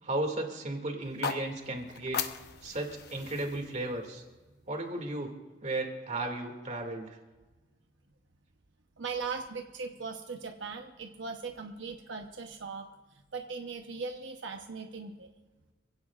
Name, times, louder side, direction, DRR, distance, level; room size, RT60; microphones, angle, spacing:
voice 1, 0.0-2.2 2.6-4.2 4.7-5.3 5.6-7.2, right 2 dB, 40° right, 3 dB, 2.4 m, -35 dB
sound 1, 1.0-5.1, left 6 dB, 60° left, 1.0 m, -39 dB
voice 2, 9.0-12.9 13.3-15.3, right 4 dB, 80° right, 4 dB, 1.0 m, -39 dB
27.0 x 17.0 x 2.5 m, 1.2 s
head